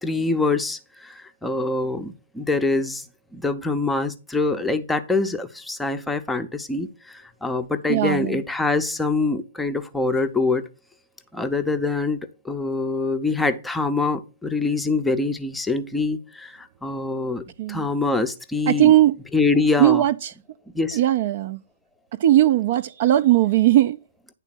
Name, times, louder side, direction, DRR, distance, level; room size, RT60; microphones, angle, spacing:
voice 1, 0.0-3.1 3.3-10.7 11.3-18.9 19.3-20.0 20.7-21.0, left 3 dB, 5° left, 0.6 m, -24 dB
voice 2, 7.9-8.4 17.6-17.9 18.7-19.1 19.8-20.3 20.9-21.6 22.2-24.0, right 13 dB, 40° right, 0.4 m, -18 dB
9.8 x 3.6 x 6.0 m
figure-of-eight pair, 125°, 0 cm